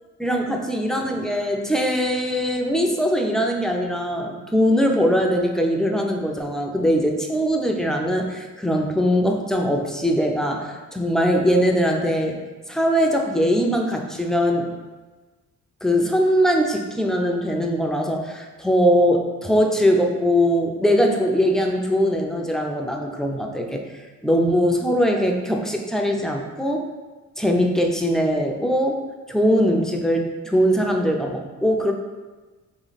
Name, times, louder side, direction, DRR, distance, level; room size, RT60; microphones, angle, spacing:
voice 1, 0.2-12.4 12.7-14.7 15.8-23.8 24.2-26.9 27.4-29.0 29.3-31.9, equal, ahead, 1 dB, 0.5 m, -21 dB
3.1 x 3.1 x 4.0 m, 1.3 s
cardioid pair, 90°, 30 cm